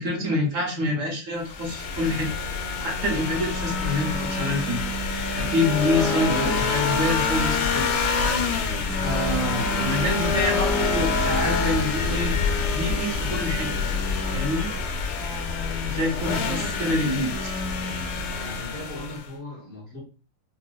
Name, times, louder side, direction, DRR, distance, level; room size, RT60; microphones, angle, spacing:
voice 1, 0.0-2.3 2.8-4.8 5.3-8.0 9.0-12.3 12.7-13.9 14.3-14.7 15.8-17.3, left 1 dB, 50° right, 1.3 m, -26 dB
sound 1, 1.4-19.3, left 4 dB, 85° left, 1.4 m, -26 dB
voice 2, 5.9-6.7 16.2-17.1 18.4-20.0, left 2 dB, 50° left, 1.5 m, -38 dB
5.0 x 2.3 x 2.3 m
omnidirectional pair, 2.0 m